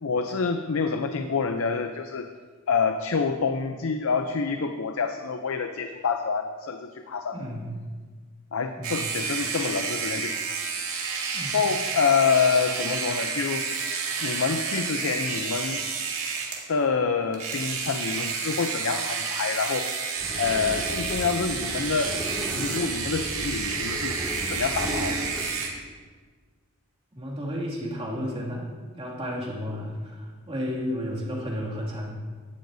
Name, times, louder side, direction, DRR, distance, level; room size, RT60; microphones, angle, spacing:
voice 1, 0.0-2.3 2.7-7.4 8.5-10.4 11.4-13.7 14.2-15.8 16.7-19.9 20.4-22.1 22.5-24.2 24.5-25.3, left 5 dB, 75° left, 7 dB, 0.6 m, -27 dB
voice 2, 7.3-7.7 8.8-9.0 11.3-11.6 27.1-32.1, equal, 25° right, -3 dB, 2.3 m, -32 dB
sound 1, 8.8-16.7 17.3-25.7, right 5 dB, 80° right, 2.1 m, -30 dB
sound 2, 20.2-25.5, equal, ahead, 2.1 m, -35 dB
17.0 x 11.5 x 2.7 m, 1.5 s
head